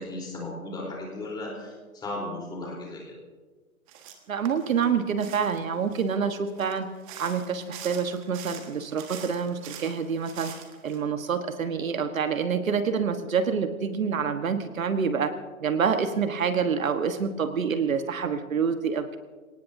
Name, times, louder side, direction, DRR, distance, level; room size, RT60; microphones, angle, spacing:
voice 1, 0.0-3.2, left 2 dB, 10° left, -2 dB, 3.9 m, -36 dB
sound 1, 3.9-4.1 4.4-6.1 6.5-11.0, right 9 dB, 25° right, 1.6 m, -44 dB
voice 2, 4.3-6.9 7.2-10.5 10.8-15.3 15.6-19.2, right 6 dB, 70° right, 8 dB, 1.5 m, -27 dB
27.5 x 18.5 x 2.8 m, 1.4 s
hypercardioid pair, 150°, 43 cm